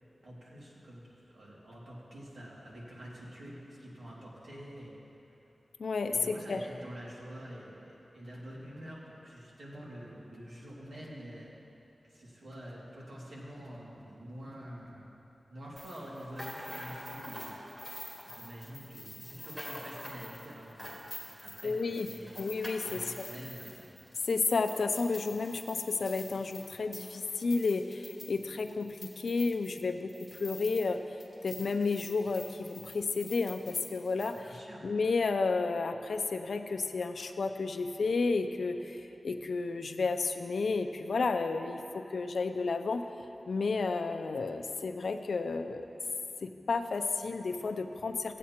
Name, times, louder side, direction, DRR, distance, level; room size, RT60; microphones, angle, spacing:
voice 1, 0.2-5.0 6.1-11.5 12.1-15.1 15.5-17.9 18.3-21.0 21.4-22.3 22.8-23.9 34.4-34.8, equal, 80° right, -6 dB, 2.3 m, -47 dB
voice 2, 5.8-6.6 21.6-22.1 22.4-23.1 24.3-31.0 31.4-43.0 43.5-45.9 46.4-48.4, left 4 dB, 80° left, 7 dB, 0.5 m, -32 dB
sound 1, 15.8-30.9 31.2-34.4, left 1 dB, ahead, 1.8 m, -46 dB
16.0 x 8.3 x 2.9 m, 3.0 s
wide cardioid pair, 95°, 0 cm